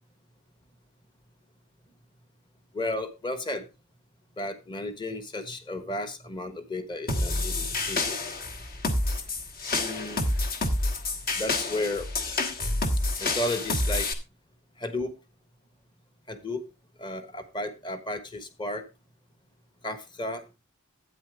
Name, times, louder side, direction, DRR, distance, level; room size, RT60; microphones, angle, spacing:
voice 1, 2.7-3.6 4.4-8.2 9.7-10.3 11.4-12.1 13.2-14.1 14.8-15.1 16.3-16.6 17.0-18.8 19.8-20.4, left 1 dB, 20° left, 10 dB, 1.2 m, -33 dB
sound 1, 7.1-14.1, left 2 dB, 45° left, 1.3 m, -28 dB
12.0 x 9.1 x 3.3 m, 0.25 s
head